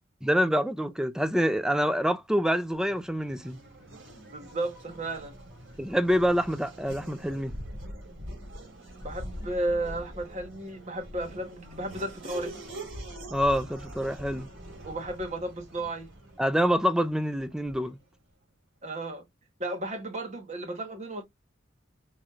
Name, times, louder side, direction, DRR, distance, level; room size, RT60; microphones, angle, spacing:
voice 1, 0.2-3.6 5.8-7.5 13.3-14.5 16.4-18.0, equal, 5° right, 0.5 m, -26 dB
Race car auto racing / Accelerating revving vroom, 2.4-18.0, right 1 dB, 90° right, 3.0 m, -44 dB
voice 2, 4.3-5.3 9.0-12.5 14.8-16.1 18.8-19.2 19.6-21.2, right 1 dB, 35° right, 1.3 m, -33 dB
5.7 x 3.1 x 2.4 m
head